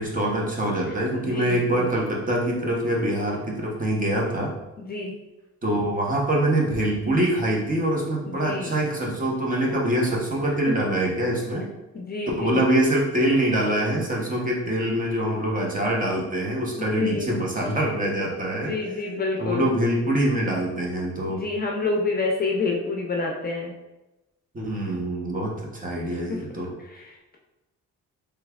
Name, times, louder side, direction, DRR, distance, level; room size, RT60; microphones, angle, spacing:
voice 1, 0.0-4.5 5.6-11.7 12.4-18.7 19.4-21.4 24.5-26.7, right 1 dB, 25° right, -2 dB, 0.9 m, -24 dB
voice 2, 1.1-1.9 4.8-5.1 8.3-8.8 10.7-10.8 11.9-12.7 16.8-17.3 18.5-19.8 21.3-23.7 26.1-26.4 26.8-27.4, left 3 dB, 30° left, 0 dB, 0.5 m, -28 dB
3.4 x 3.1 x 2.3 m, 1.0 s
cardioid pair, 90°, 30 cm